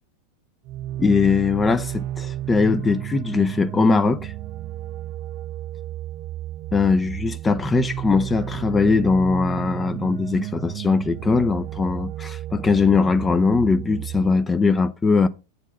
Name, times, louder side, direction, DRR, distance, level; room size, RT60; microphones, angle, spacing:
sound 1, 0.6-14.3, right 13 dB, 40° right, 0.4 m, -32 dB
voice 1, 1.0-4.3 6.7-15.3, left 4 dB, 15° left, 0.5 m, -20 dB
8.1 x 4.1 x 6.8 m
figure-of-eight pair, 90°, 0 cm